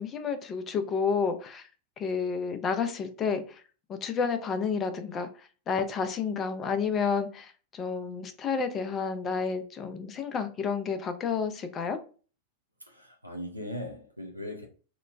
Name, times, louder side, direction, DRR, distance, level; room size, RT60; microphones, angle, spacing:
voice 1, 0.0-1.7 2.0-3.6 3.9-12.0, left 5 dB, 25° left, 0.4 m, -30 dB
voice 2, 12.9-14.7, left 1 dB, 85° right, 0.4 m, -39 dB
2.8 x 2.1 x 2.4 m
figure-of-eight pair, 90°, 0 cm